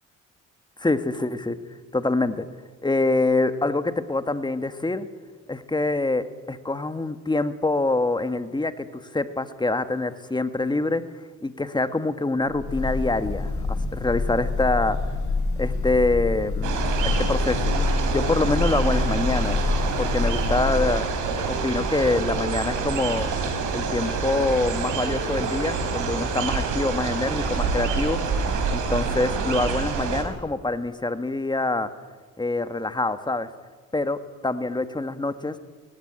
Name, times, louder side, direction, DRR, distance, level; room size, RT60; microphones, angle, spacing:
voice 1, 0.8-1.6 1.9-2.5 2.8-5.1 5.5-8.8 9.1-11.0 11.4-15.0 15.6-17.6 17.8-19.6 20.0-23.3 23.7-28.4 28.7-31.9 32.4-33.5 33.9-34.2 34.4-35.6, left 2 dB, 15° left, 10 dB, 1.4 m, -25 dB
Breathing / Bird, 12.5-21.0, left 3 dB, 65° left, 7.4 m, -26 dB
sound 1, 16.6-30.2, right 5 dB, 85° right, 3.8 m, -27 dB
Wind instrument woodwind instrument, 19.2-23.5 23.9-28.7, right 1 dB, 25° right, 3.2 m, -40 dB
19.0 x 15.5 x 9.9 m, 1.4 s
cardioid pair, 90°, 30 cm